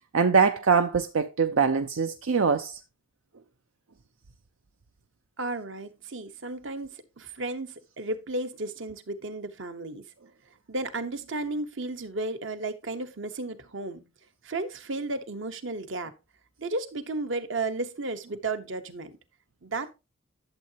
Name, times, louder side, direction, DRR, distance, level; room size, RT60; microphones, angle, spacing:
voice 1, 0.1-2.8, right 5 dB, 85° right, 0.6 m, -23 dB
voice 2, 5.4-10.1 10.7-14.0 14.4-16.1 16.6-19.2 19.6-19.9, right 2 dB, 65° right, 1.1 m, -33 dB
11.5 x 7.5 x 2.9 m
head